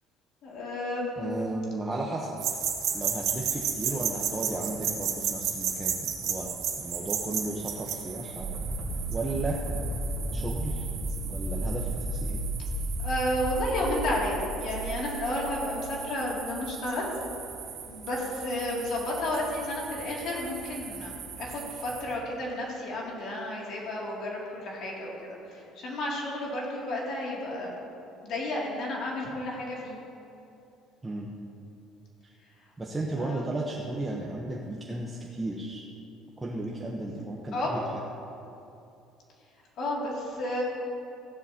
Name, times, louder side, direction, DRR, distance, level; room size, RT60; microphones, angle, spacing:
voice 1, 0.4-1.4 3.8-4.0 13.0-17.0 17.9-27.8 28.2-30.0 33.2-33.5 37.5-37.8 39.8-40.6, left 1 dB, 55° left, -3 dB, 2.5 m, -32 dB
voice 2, 1.2-2.3 2.9-6.5 6.8-8.5 9.1-9.6 10.3-10.8 11.2-12.4 31.0-31.3 32.2-32.3 32.8-35.8 36.4-37.8, right 2 dB, 15° right, -2 dB, 0.9 m, -34 dB
sound 1, 2.4-22.1, right 7 dB, 60° right, 1.7 m, -35 dB
sound 2, 8.4-16.1, right 1 dB, 40° right, 2.4 m, -33 dB
15.0 x 12.0 x 2.8 m, 2.7 s
cardioid pair, 150°, 0 cm